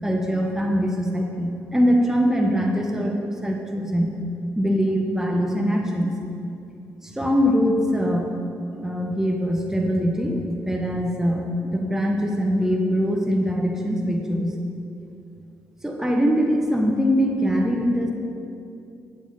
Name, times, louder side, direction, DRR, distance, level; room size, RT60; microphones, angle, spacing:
voice 1, 0.0-4.1 4.5-6.2 7.0-8.3 8.8-14.6 15.8-18.1, equal, 5° right, 0 dB, 1.1 m, -22 dB
8.9 x 7.5 x 4.0 m, 2.7 s
hypercardioid pair, 50°, 7 cm